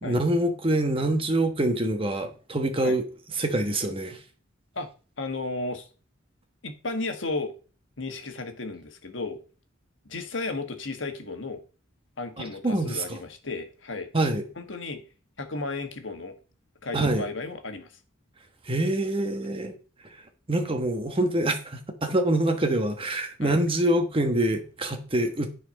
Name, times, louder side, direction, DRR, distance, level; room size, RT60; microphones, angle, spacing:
voice 1, 0.0-3.0 3.4-4.2 12.4-13.2 14.1-14.4 16.9-17.2 18.6-19.7 20.5-25.5, right 1 dB, 30° right, 1.2 m, -25 dB
voice 2, 5.2-5.9 6.6-7.5 8.0-9.4 10.0-11.6 12.2-14.1 14.6-15.0 15.4-16.4 16.8-17.9 23.4-23.6, left 3 dB, 75° left, 1.4 m, -34 dB
10.5 x 4.4 x 5.2 m
head